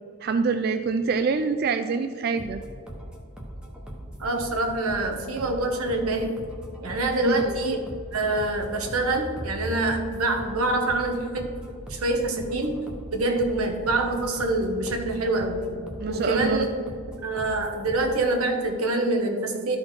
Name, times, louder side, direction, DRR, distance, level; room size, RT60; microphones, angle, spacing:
voice 1, 0.2-2.6 7.2-7.6 16.0-16.6, right 5 dB, 45° right, 8 dB, 0.3 m, -25 dB
sound 1, 2.4-18.3, right 1 dB, 5° right, 0.9 m, -40 dB
voice 2, 4.2-6.4 6.8-7.8 8.1-11.6 11.9-12.9 13.1-15.7 16.1-16.7 17.2-19.8, right 2 dB, 90° right, 4 dB, 1.2 m, -25 dB
12.5 x 4.2 x 4.7 m, 2.2 s
head